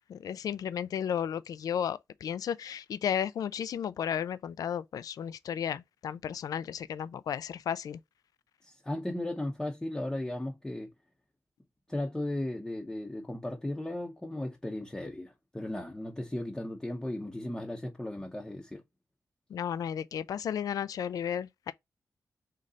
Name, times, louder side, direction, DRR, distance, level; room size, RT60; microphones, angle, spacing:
voice 1, 0.1-8.0 19.5-21.7, left 8 dB, 75° left, 0.3 m, -33 dB
voice 2, 8.6-10.9 11.9-18.8, left 1 dB, 10° left, 0.7 m, -36 dB
3.8 x 3.2 x 3.9 m
wide cardioid pair, 140°, 6 cm